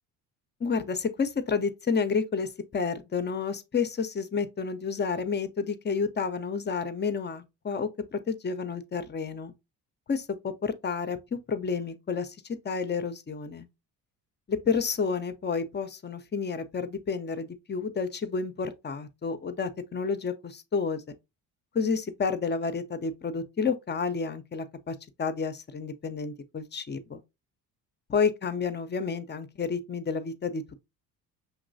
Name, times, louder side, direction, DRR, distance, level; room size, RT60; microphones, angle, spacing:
voice 1, 0.6-9.5 10.1-13.7 14.5-21.1 21.7-27.2 28.1-30.8, left 5 dB, 25° left, 0.6 m, -30 dB
5.8 x 3.0 x 2.6 m
hypercardioid pair, 55°, 47 cm